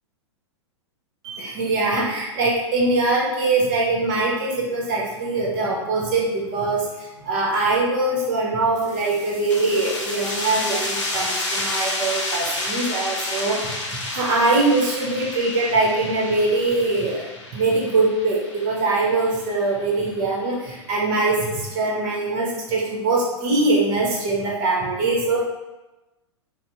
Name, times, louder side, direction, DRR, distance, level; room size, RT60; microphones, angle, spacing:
voice 1, 1.2-6.9 7.2-13.8 14.1-17.3 17.5-25.4, right 2 dB, 50° right, -3 dB, 1.1 m, -22 dB
sound 1, 8.8-20.1, left 2 dB, 85° left, 0.8 m, -30 dB
4.0 x 2.1 x 2.8 m, 1.0 s
hypercardioid pair, 105°, 15 cm